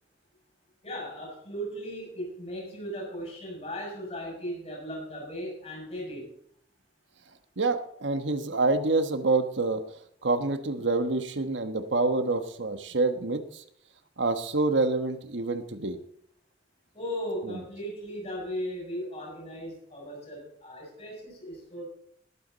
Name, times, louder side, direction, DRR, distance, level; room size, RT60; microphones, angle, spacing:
voice 1, 0.8-6.3 16.9-21.8, equal, 35° left, -1 dB, 6.7 m, -37 dB
voice 2, 7.6-9.8 10.2-13.6 14.2-16.0 17.5-17.6, right 3 dB, 80° right, 8 dB, 1.3 m, -27 dB
19.5 x 8.7 x 4.1 m, 0.65 s
head